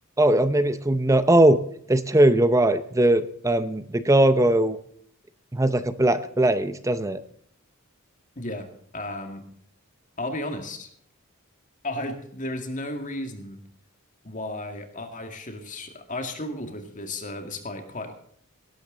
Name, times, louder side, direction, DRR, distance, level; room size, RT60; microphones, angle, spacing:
voice 1, 0.2-1.6 1.9-4.8 5.5-7.2, right 1 dB, 15° right, 12 dB, 0.7 m, -20 dB
voice 2, 8.4-9.4 10.2-10.9 11.8-13.6 14.2-18.1, left 1 dB, 35° left, 6 dB, 2.1 m, -34 dB
18.5 x 12.0 x 3.9 m, 0.63 s
head